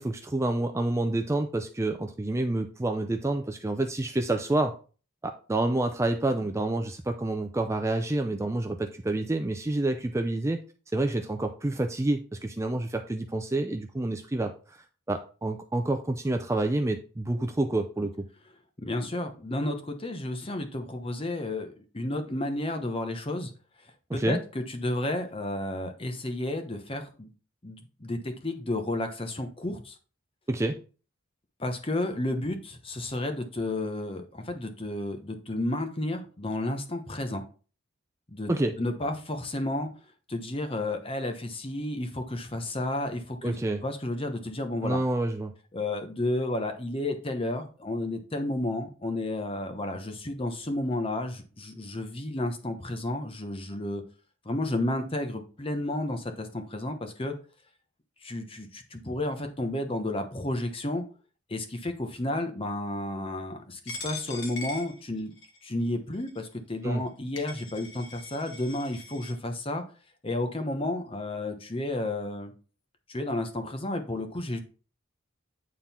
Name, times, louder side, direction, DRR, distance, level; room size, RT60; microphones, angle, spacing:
voice 1, 0.0-4.7 5.5-10.6 10.9-18.3 24.1-24.4 30.5-30.8 38.5-38.7 43.4-43.8 44.8-45.5 66.8-67.0, right 2 dB, 15° right, 5 dB, 0.4 m, -28 dB
voice 2, 18.8-23.5 24.1-27.3 27.6-30.0 31.6-37.4 38.3-39.9 40.3-43.6 43.8-45.0 45.7-54.0 54.4-57.3 58.2-61.0 61.5-65.3 65.6-69.8 70.2-72.5 73.1-74.6, left 1 dB, 25° left, 6 dB, 0.9 m, -32 dB
Coin (dropping), 63.9-65.6 66.3-66.4 67.1-67.2 67.4-69.3, left 3 dB, 60° left, 1.5 m, -41 dB
9.1 x 3.7 x 4.3 m, 0.37 s
head